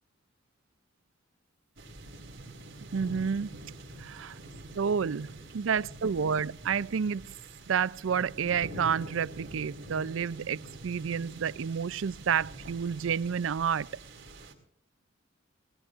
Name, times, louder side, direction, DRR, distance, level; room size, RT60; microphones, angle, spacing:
sound 1, 1.8-14.5, right 1 dB, 65° right, 3.9 m, -46 dB
voice 1, 2.9-3.6 4.0-4.4 4.8-7.4 7.7-13.9, right 7 dB, 80° right, 0.5 m, -30 dB
22.0 x 18.5 x 2.5 m
head